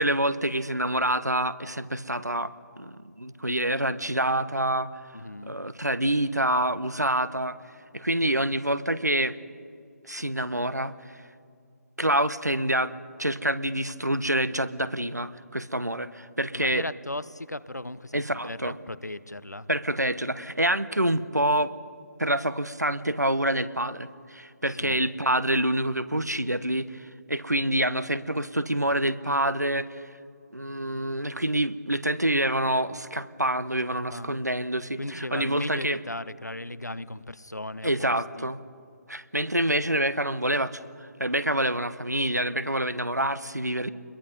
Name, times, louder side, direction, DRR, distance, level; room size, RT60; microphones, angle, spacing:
voice 1, 0.0-4.9 5.4-7.6 7.9-9.4 10.0-10.9 12.0-16.9 18.1-18.8 19.7-21.7 22.2-30.0 30.5-36.0 37.8-38.6 39.1-43.9, right 1 dB, 90° right, 14 dB, 1.1 m, -27 dB
voice 2, 5.1-5.5 16.5-19.7 24.7-25.0 34.1-34.4 35.0-38.5, left 1 dB, 85° left, 16 dB, 0.9 m, -37 dB
27.0 x 22.0 x 5.4 m, 2.4 s
figure-of-eight pair, 145°, 9 cm